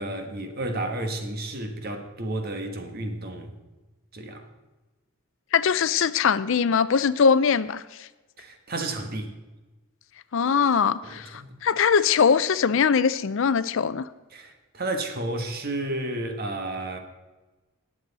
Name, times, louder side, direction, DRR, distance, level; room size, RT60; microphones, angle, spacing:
voice 1, 0.0-3.5 4.1-4.5 8.4-9.3 11.0-11.5 14.3-17.0, right 1 dB, 45° right, 1.4 m, -32 dB
voice 2, 5.5-8.1 10.3-14.1, left 6 dB, 60° left, 0.5 m, -22 dB
19.5 x 7.7 x 4.1 m
head